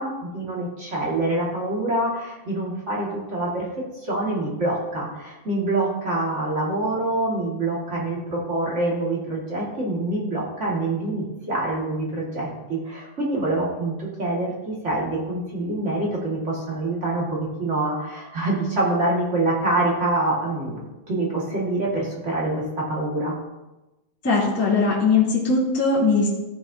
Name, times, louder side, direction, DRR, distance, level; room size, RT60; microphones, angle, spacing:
voice 1, 0.0-20.8 21.1-23.3, right 2 dB, 35° right, -5 dB, 1.2 m, -26 dB
voice 2, 24.2-26.3, left 4 dB, 5° left, -7 dB, 2.1 m, -20 dB
15.0 x 6.7 x 2.7 m, 1.0 s
omnidirectional pair, 4.2 m